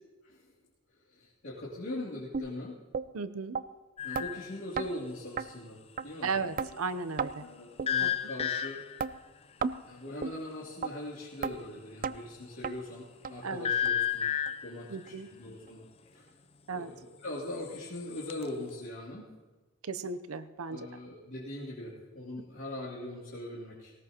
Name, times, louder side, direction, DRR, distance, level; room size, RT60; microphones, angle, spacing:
voice 1, 1.1-2.8 4.0-6.3 7.4-8.8 9.8-14.3 14.6-15.8 16.1-16.3 16.7-19.3 20.7-23.9, left 1 dB, 60° left, -9 dB, 2.9 m, -41 dB
sound 1, 2.3-2.5 2.9-3.1 3.6-3.7 4.2-4.3 4.8-4.9 5.4-5.5 6.0-6.1 6.6-6.7 7.2-7.3 7.8-7.9 8.4-8.5 9.0-9.1 9.6-9.8 10.2-10.4 10.8-10.9 11.4-11.6 12.0-12.2 12.6-12.8 13.2-13.3 13.9-14.0 14.5-14.6 15.1-15.2, right 5 dB, 40° right, 0.4 m, -33 dB
voice 2, 3.1-3.6 6.2-7.5 8.0-8.3 13.4-13.7 14.9-15.3 16.7-16.9 19.8-21.0, right 4 dB, 75° right, 13 dB, 0.7 m, -36 dB
sound 2, 4.0-4.5 7.9-9.1 13.6-14.8 17.5-18.5, left 9 dB, 30° left, 0.5 m, -31 dB
18.5 x 18.5 x 2.9 m, 1.2 s
head